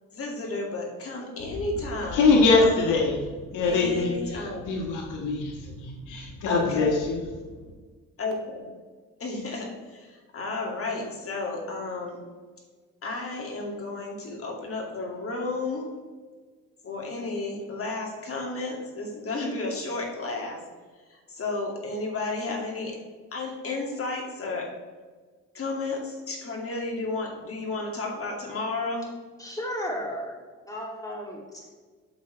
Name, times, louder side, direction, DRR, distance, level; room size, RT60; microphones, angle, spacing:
voice 1, 0.1-3.1 3.6-4.8 6.5-7.0 8.2-8.7 9.2-12.2 13.0-15.9 16.8-20.6 21.1-23.0 23.3-24.7 25.5-29.1, left 3 dB, 50° left, 0 dB, 2.3 m, -32 dB
voice 2, 2.1-3.2 3.5-4.1 4.7-7.2, left 3 dB, 90° left, 0 dB, 1.6 m, -23 dB
voice 3, 29.4-30.4 30.7-31.7, equal, 10° left, -2 dB, 2.6 m, -34 dB
8.7 x 7.2 x 3.3 m, 1.5 s
cardioid pair, 90°, 30 cm